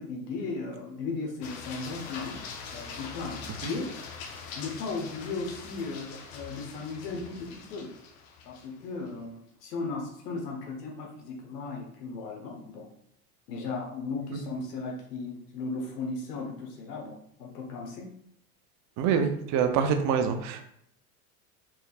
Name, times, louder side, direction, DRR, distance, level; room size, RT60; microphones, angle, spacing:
voice 1, 0.0-2.4 2.7-4.0 4.5-7.9 8.4-12.9 13.5-18.1, left 3 dB, 75° left, 0 dB, 1.2 m, -36 dB
sound 1, 1.4-9.1, left 5 dB, 45° left, 0.8 m, -43 dB
voice 2, 19.0-20.6, right 7 dB, 40° right, 7 dB, 0.5 m, -26 dB
4.5 x 3.4 x 2.4 m, 0.71 s
supercardioid pair, 115°, 47 cm